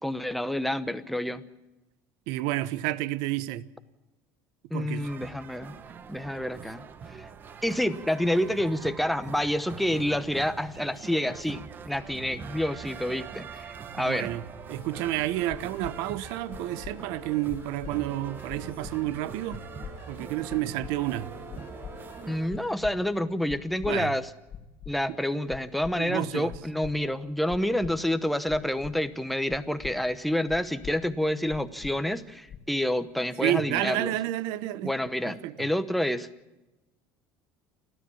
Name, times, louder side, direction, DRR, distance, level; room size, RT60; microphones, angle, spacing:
voice 1, 0.0-1.4 4.7-5.7 6.1-7.2 7.6-14.3 22.3-24.3 24.9-34.2 34.8-36.3, left 1 dB, ahead, 0.9 m, -28 dB
voice 2, 2.3-3.6 4.7-5.1 14.0-19.6 20.1-21.3 23.8-24.1 26.0-26.5 33.4-34.9 35.3-35.7, right 15 dB, 70° right, 0.9 m, -30 dB
sound 1, 5.0-22.5, right 6 dB, 25° right, 0.9 m, -43 dB
sound 2, 14.8-22.7, left 11 dB, 90° left, 1.5 m, -50 dB
sound 3, 15.5-15.9 16.5-16.9 17.5-17.9 18.5-18.9 19.5-19.9 20.5-20.9 21.5-21.9 22.5-22.9 23.5-23.9 24.5-24.9 25.5-25.9 26.5-26.9 27.5-27.9 28.5-28.9 29.5-29.9 30.5-30.9 31.5-31.9 32.5-32.8, left 9 dB, 30° left, 2.1 m, -41 dB
29.5 x 12.5 x 7.1 m
cardioid pair, 160°, 7 cm